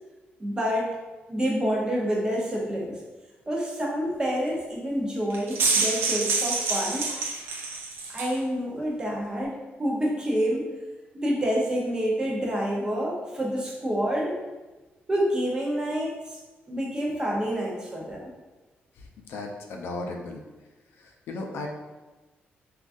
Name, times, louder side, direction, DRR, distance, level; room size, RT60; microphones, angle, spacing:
voice 1, 0.4-0.9 1.3-3.0 3.5-7.1 8.1-10.7 11.1-14.4 15.1-16.4 16.7-18.3, equal, 20° right, -2 dB, 0.6 m, -28 dB
sound 1, 5.3-8.4, right 4 dB, 75° right, 0.5 m, -27 dB
voice 2, 19.3-20.4 21.3-21.7, left 2 dB, 80° left, 2 dB, 0.4 m, -34 dB
3.6 x 2.4 x 2.5 m, 1.2 s
cardioid pair, 145°, 4 cm